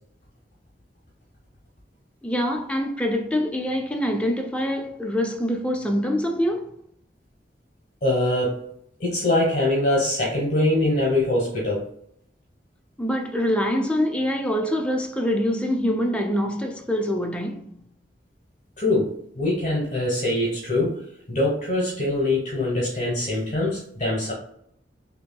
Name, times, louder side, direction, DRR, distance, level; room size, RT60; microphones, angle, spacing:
voice 1, 2.2-6.7 13.0-17.8, equal, 5° left, 0.5 m, -25 dB
voice 2, 8.0-8.6 9.0-11.9 18.8-24.3, left 1 dB, 45° left, 1.1 m, -23 dB
5.7 x 2.6 x 2.3 m
head